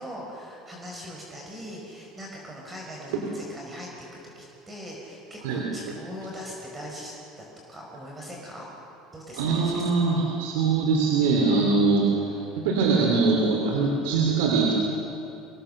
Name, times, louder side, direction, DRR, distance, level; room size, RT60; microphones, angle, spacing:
voice 1, 0.0-8.7 9.1-9.8, equal, 15° right, -2 dB, 5.2 m, -41 dB
voice 2, 9.3-14.7, right 4 dB, 90° right, -1 dB, 3.2 m, -23 dB
25.5 x 18.5 x 6.7 m, 2.8 s
supercardioid pair, 115°, 0 cm